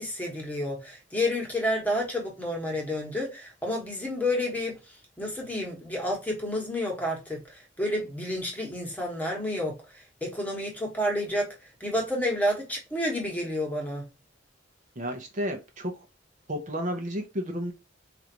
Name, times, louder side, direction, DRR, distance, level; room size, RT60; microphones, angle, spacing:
voice 1, 0.0-4.8 5.2-9.8 10.2-11.5 11.8-14.0, left 1 dB, 10° left, 1.2 m, -30 dB
voice 2, 15.0-15.9 16.5-17.7, equal, 40° right, 0.7 m, -32 dB
4.7 x 2.5 x 2.8 m
head